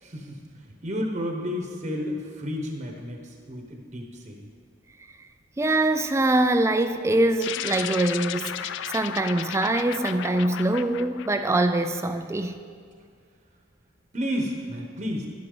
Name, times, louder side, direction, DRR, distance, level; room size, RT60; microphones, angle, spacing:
voice 1, 0.0-4.5 14.1-15.3, equal, 35° right, 1 dB, 1.0 m, -32 dB
voice 2, 5.6-12.6, right 2 dB, 15° right, 9 dB, 0.3 m, -24 dB
sound 1, 7.4-12.1, left 10 dB, 65° left, 0.3 m, -34 dB
11.5 x 11.0 x 3.9 m, 2.1 s
head